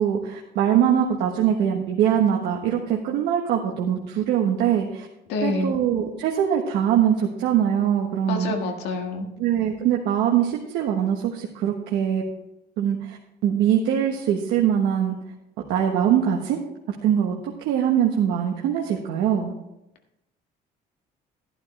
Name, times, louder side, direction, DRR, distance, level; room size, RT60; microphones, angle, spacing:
voice 1, 0.0-5.1 5.4-8.5 9.4-12.2 12.8-13.2 13.4-15.2 15.7-16.6 17.0-19.5, right 9 dB, 90° right, 0 dB, 1.3 m, -22 dB
voice 2, 5.3-5.7 8.3-9.3, left 3 dB, 85° left, 4 dB, 1.8 m, -27 dB
12.0 x 11.5 x 3.3 m, 0.88 s
cardioid pair, 110°, 17 cm